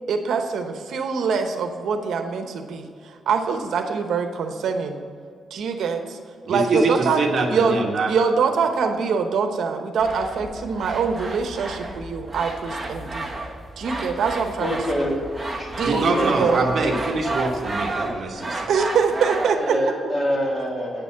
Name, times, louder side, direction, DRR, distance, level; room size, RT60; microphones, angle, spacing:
voice 1, 0.1-5.0 5.5-6.2 6.5-7.8 8.1-13.3 13.8-15.1 15.8-16.6 18.7-19.8 20.0-20.1, right 5 dB, 70° right, 5 dB, 0.9 m, -24 dB
voice 2, 6.4-8.1 15.8-18.7, right 3 dB, 45° right, 1 dB, 1.2 m, -24 dB
sound 1, 10.0-19.5, right 2 dB, 5° right, 1.1 m, -32 dB
voice 3, 14.6-16.8 18.1-18.2 19.5-21.0, equal, 25° left, -2 dB, 2.1 m, -26 dB
8.9 x 6.9 x 7.4 m, 2.3 s
wide cardioid pair, 170°, 0 cm